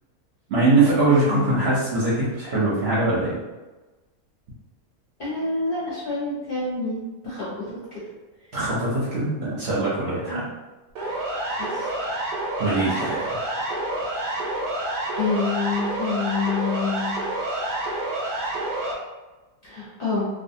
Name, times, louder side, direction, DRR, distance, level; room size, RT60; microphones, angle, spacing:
voice 1, 0.5-3.4 8.5-10.4 11.6-11.9 12.6-13.3, right 2 dB, 55° right, -8 dB, 0.8 m, -22 dB
voice 2, 1.3-1.7 5.2-8.0 10.3-10.4 11.6-11.9 13.0-13.2 15.1-17.1 19.6-20.3, left 4 dB, 45° left, -8 dB, 0.8 m, -28 dB
Siren, 11.0-18.9, right 1 dB, 90° right, 1.1 m, -28 dB
2.4 x 2.3 x 2.6 m, 1.1 s
omnidirectional pair, 1.6 m